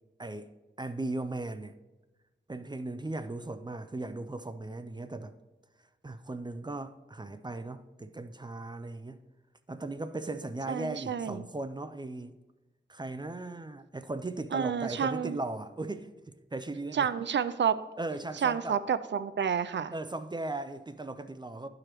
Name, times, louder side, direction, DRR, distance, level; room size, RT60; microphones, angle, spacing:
voice 1, 0.8-1.7 2.5-5.3 6.0-9.2 9.7-12.3 12.9-17.1 18.0-18.8 19.9-21.7, right 2 dB, 25° right, 0.4 m, -37 dB
voice 2, 10.7-11.4 14.5-15.4 16.9-17.8 18.4-19.9, right 7 dB, 85° right, 0.4 m, -29 dB
13.0 x 4.9 x 3.0 m
wide cardioid pair, 75°, 18 cm